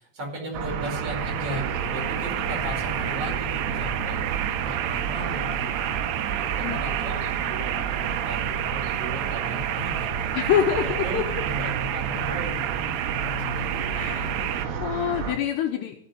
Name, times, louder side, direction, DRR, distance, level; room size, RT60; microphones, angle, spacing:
voice 1, 0.0-5.9 6.3-12.9 13.4-14.6, right 1 dB, 30° right, -2 dB, 5.6 m, -37 dB
sound 1, 0.5-15.4, right 6 dB, 65° right, 3.3 m, -30 dB
sound 2, 0.7-14.7, right 13 dB, 80° right, 3.0 m, -31 dB
voice 2, 10.3-11.2 13.9-16.0, left 9 dB, 70° left, 2 dB, 2.9 m, -26 dB
16.5 x 6.8 x 9.4 m, 0.67 s
omnidirectional pair, 5.5 m